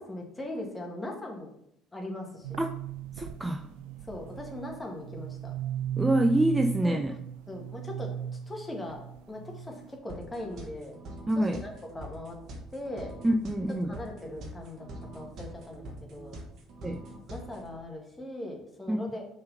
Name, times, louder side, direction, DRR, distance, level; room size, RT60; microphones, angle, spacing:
voice 1, 0.1-1.6 1.9-2.6 4.0-5.5 6.8-7.0 7.5-8.1 8.5-9.0 9.3-11.0 11.4-12.4 12.7-13.1 13.8-14.9 15.1-16.4 17.3-19.2, left 1 dB, 15° left, 0 dB, 1.9 m, -39 dB
sound 1, 2.4-10.0, right 10 dB, 75° right, 0.4 m, -37 dB
voice 2, 3.2-3.7 6.0-7.1 11.3-11.6 13.2-14.0 16.8-17.0 18.9-19.0, right 1 dB, 15° right, 6 dB, 0.5 m, -26 dB
sound 2, 10.1-17.8, right 1 dB, 55° right, 1.3 m, -44 dB
5.4 x 3.9 x 5.6 m, 0.74 s
hypercardioid pair, 60°, 0 cm